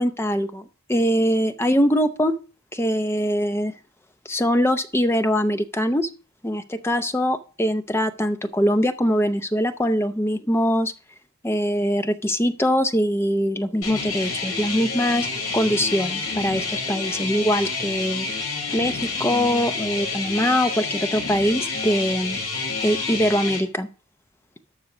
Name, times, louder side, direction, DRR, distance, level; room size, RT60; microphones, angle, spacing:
voice 1, 0.0-2.3 2.7-3.7 4.3-6.1 6.4-10.9 11.4-15.3 15.5-18.3 18.7-22.4 22.8-23.9, equal, 10° left, 8 dB, 0.6 m, -22 dB
sound 1, 13.8-23.6, left 4 dB, 70° left, 5.3 m, -28 dB
12.5 x 6.4 x 4.9 m, 0.37 s
head